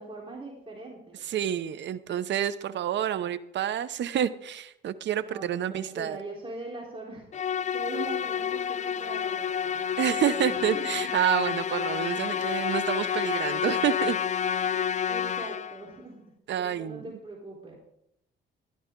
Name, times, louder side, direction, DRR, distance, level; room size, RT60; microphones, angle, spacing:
voice 1, 0.0-1.3 5.2-9.8 10.5-10.9 12.3-12.4 15.1-16.3 16.6-17.8, right 2 dB, 25° right, -3 dB, 3.8 m, -41 dB
voice 2, 1.2-6.2 10.0-14.2 16.5-17.1, right 10 dB, 65° right, 14 dB, 0.8 m, -28 dB
Musical instrument, 7.3-15.9, left 8 dB, 35° left, 0.5 m, -29 dB
14.0 x 12.0 x 3.8 m, 0.75 s
cardioid pair, 90°, 20 cm